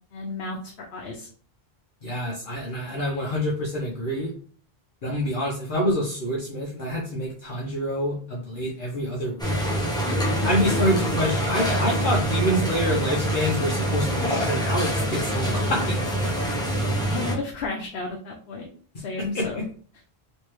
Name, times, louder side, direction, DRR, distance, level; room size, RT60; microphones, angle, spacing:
voice 1, 0.1-1.3 10.1-10.5 17.1-18.7 19.0-19.7, left 3 dB, 75° left, 1 dB, 0.9 m, -33 dB
voice 2, 2.0-4.3 5.0-9.5 10.4-16.7 19.2-19.6, equal, 55° left, -3 dB, 1.0 m, -27 dB
sound 1, 9.4-17.3, equal, 5° left, 0.8 m, -25 dB
3.2 x 3.2 x 3.1 m, 0.43 s
omnidirectional pair, 1.1 m